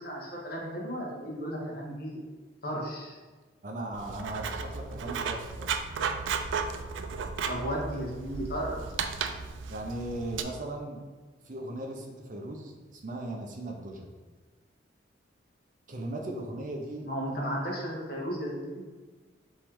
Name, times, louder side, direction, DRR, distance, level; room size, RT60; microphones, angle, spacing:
voice 1, 0.0-2.2 2.6-3.2 7.4-8.8 17.0-18.8, equal, 55° left, -2 dB, 1.1 m, -34 dB
voice 2, 3.6-5.7 6.0-6.3 9.7-11.0 11.4-14.1 15.9-17.1, right 1 dB, 45° right, 1 dB, 0.6 m, -38 dB
Writing, 3.9-10.4, right 5 dB, 90° right, 0.3 m, -34 dB
3.7 x 3.1 x 4.5 m, 1.4 s
head